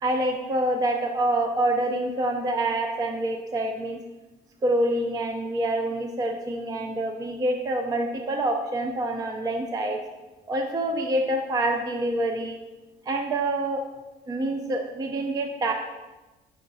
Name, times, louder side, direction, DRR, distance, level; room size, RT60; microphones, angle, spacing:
voice 1, 0.0-4.0 4.6-10.0 10.5-12.6 13.1-13.8 14.3-15.7, right 1 dB, 20° right, 4 dB, 0.4 m, -26 dB
5.6 x 2.3 x 3.9 m, 1.1 s
cardioid pair, 110°, 17 cm